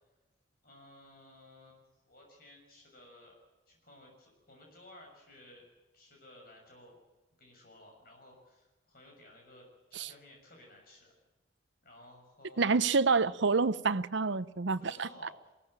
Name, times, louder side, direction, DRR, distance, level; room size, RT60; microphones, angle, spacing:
voice 1, 0.6-3.4 3.7-5.6 5.9-7.0 7.4-11.1 11.8-12.9 14.8-15.5, left 1 dB, 50° left, 6.4 m, -56 dB
voice 2, 12.6-15.1, right 4 dB, 70° right, 0.7 m, -28 dB
22.5 x 16.5 x 8.9 m
head